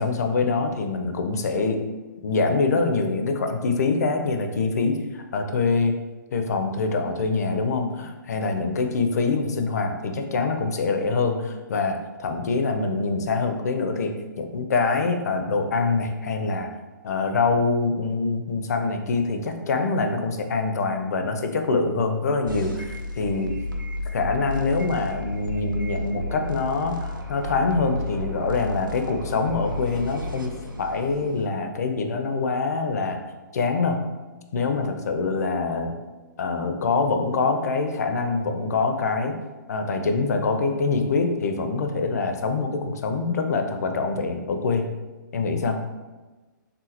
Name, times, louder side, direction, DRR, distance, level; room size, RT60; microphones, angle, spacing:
voice 1, 0.0-1.8 2.2-6.0 6.3-14.1 14.4-16.7 17.0-23.5 24.1-30.5 30.8-33.2 33.5-34.0 34.5-36.0 36.4-39.3 39.7-44.9 45.3-45.8, left 4 dB, 50° left, 5 dB, 0.4 m, -25 dB
sound 1, 22.5-31.5, left 2 dB, 85° right, 0.6 m, -32 dB
3.7 x 2.5 x 2.8 m, 1.2 s
figure-of-eight pair, 125°, 11 cm